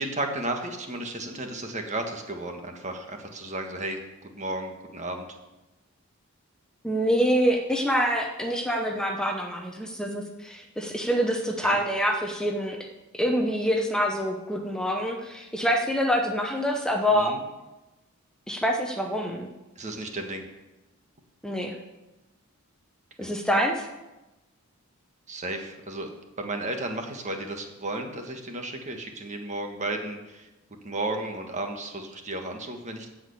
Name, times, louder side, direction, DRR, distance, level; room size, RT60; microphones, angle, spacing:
voice 1, 0.0-4.0 4.4-5.3 11.6-11.8 17.1-17.4 19.8-20.4 23.2-23.3 25.3-30.5 30.8-33.1, right 2 dB, 30° right, 4 dB, 1.4 m, -33 dB
voice 2, 6.8-12.8 13.1-17.4 18.5-19.5 21.4-21.8 23.2-23.9, equal, 5° left, 2 dB, 0.8 m, -26 dB
15.0 x 5.1 x 8.0 m, 1.0 s
head